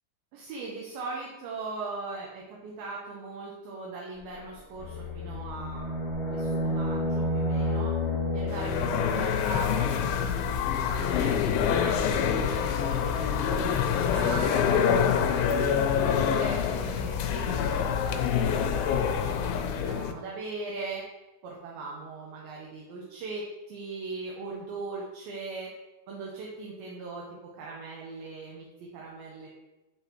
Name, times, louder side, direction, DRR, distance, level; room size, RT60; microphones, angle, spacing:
voice 1, 0.3-5.9 6.3-7.9 8.3-12.0 12.4-21.0 21.4-25.7 26.1-27.2 27.5-28.7 28.9-29.5, right 3 dB, 75° right, -3 dB, 2.5 m, -40 dB
sound 1, 4.8-9.2, left 1 dB, 45° left, 0.8 m, -30 dB
sound 2, 8.5-20.1, left 7 dB, 80° left, 2.4 m, -26 dB
10.5 x 3.9 x 3.0 m, 1.1 s
omnidirectional pair, 4.6 m